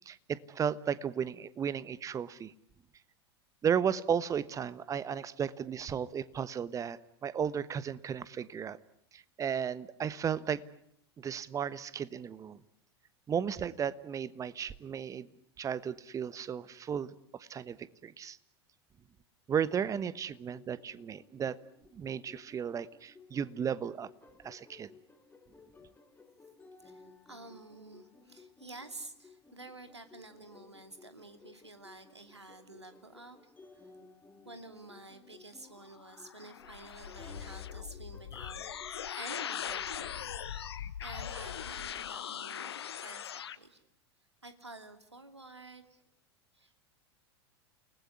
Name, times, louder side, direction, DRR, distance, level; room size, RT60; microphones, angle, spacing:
voice 1, 0.1-2.5 3.6-8.8 9.1-10.6 11.2-12.6 13.3-15.3 15.6-18.4 19.5-21.6 21.9-24.1 24.4-24.9, right 8 dB, 25° right, 17 dB, 1.2 m, -34 dB
sound 1, 20.1-40.0, left 4 dB, 15° left, 3.1 m, -58 dB
voice 2, 26.8-33.5 33.8-33.9 34.4-40.3 41.0-43.8 44.4-46.0 46.5-46.9, right 2 dB, 85° right, 8 dB, 2.7 m, -50 dB
sound 2, 35.9-43.6, left 9 dB, 70° left, 1.2 m, -40 dB
29.5 x 19.5 x 9.8 m, 0.74 s
figure-of-eight pair, 85°, 14 cm